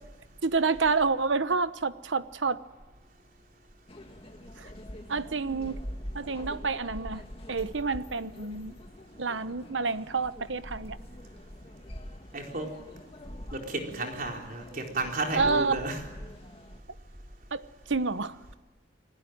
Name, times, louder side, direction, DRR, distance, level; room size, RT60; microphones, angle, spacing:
voice 1, 0.4-2.6 4.6-4.7 5.1-5.8 6.1-8.7 9.2-11.0 15.4-15.8 17.5-17.6 17.9-18.5, right 4 dB, 85° right, 13 dB, 1.0 m, -28 dB
sound 1, 3.9-16.8, equal, 30° left, 2.2 m, -44 dB
voice 2, 12.3-12.7 13.5-16.0, right 2 dB, 50° right, 2 dB, 4.2 m, -32 dB
29.5 x 19.5 x 9.4 m, 1.2 s
head